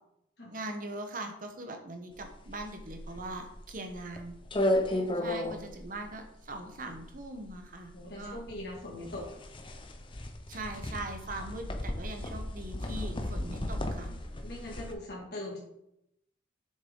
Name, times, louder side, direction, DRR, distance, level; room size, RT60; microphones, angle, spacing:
voice 1, 0.5-4.4 4.9-8.4 10.5-14.1, right 2 dB, 45° right, 4 dB, 1.1 m, -41 dB
sound 1, 2.2-14.9, left 1 dB, 25° left, 0.6 m, -35 dB
voice 2, 4.9-5.4 7.9-9.3 14.1-14.2 14.4-15.6, left 1 dB, 55° left, -4 dB, 2.0 m, -41 dB
7.4 x 6.5 x 3.8 m, 0.80 s
head